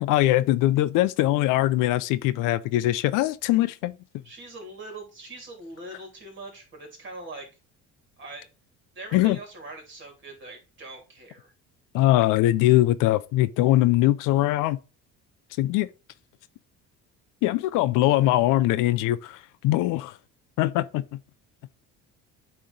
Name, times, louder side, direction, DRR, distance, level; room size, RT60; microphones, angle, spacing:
voice 1, 0.0-3.9 9.1-9.4 11.9-14.8 15.6-15.9 17.4-19.4 19.6-20.1 20.6-21.0, left 15 dB, 75° left, 0.6 m, -21 dB
voice 2, 4.2-7.5 8.2-8.5 8.9-11.5, right 2 dB, 35° right, 3.0 m, -42 dB
8.6 x 3.3 x 3.9 m
cardioid pair, 125°, 32 cm